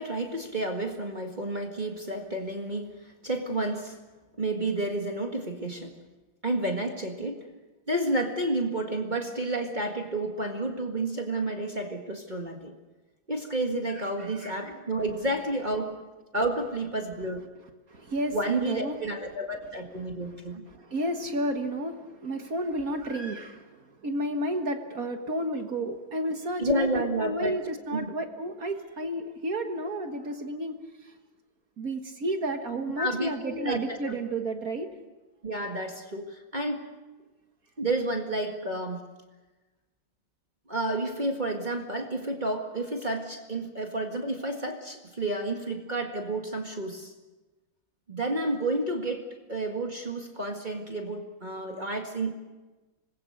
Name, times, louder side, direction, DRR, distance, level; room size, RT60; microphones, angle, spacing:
voice 1, 0.0-3.0 3.2-4.0 4.4-5.9 6.4-7.4 7.9-12.7 13.3-15.9 16.3-17.5 18.3-20.6 26.6-27.6 27.9-28.1 33.0-33.8 35.4-36.8 37.8-39.0 40.7-47.1 48.1-49.2 49.5-52.3, right 1 dB, 25° right, 2 dB, 1.9 m, -30 dB
voice 2, 13.9-14.6 17.9-19.0 19.9-31.1 31.8-34.9, right 1 dB, 55° right, 5 dB, 2.0 m, -32 dB
27.0 x 20.5 x 6.6 m, 1.2 s
omnidirectional pair, 1.9 m